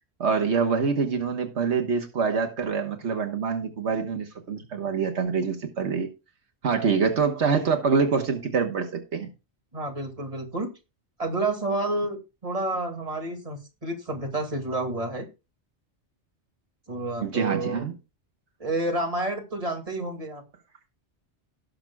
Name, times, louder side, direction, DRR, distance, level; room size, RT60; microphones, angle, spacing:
voice 1, 0.2-6.1 6.6-9.3 17.2-17.9, right 5 dB, 80° right, 1.5 m, -25 dB
voice 2, 9.7-10.7 11.2-15.3 16.9-17.8 18.6-20.4, right 2 dB, 30° right, 2.4 m, -29 dB
18.5 x 6.6 x 2.3 m
omnidirectional pair, 1.1 m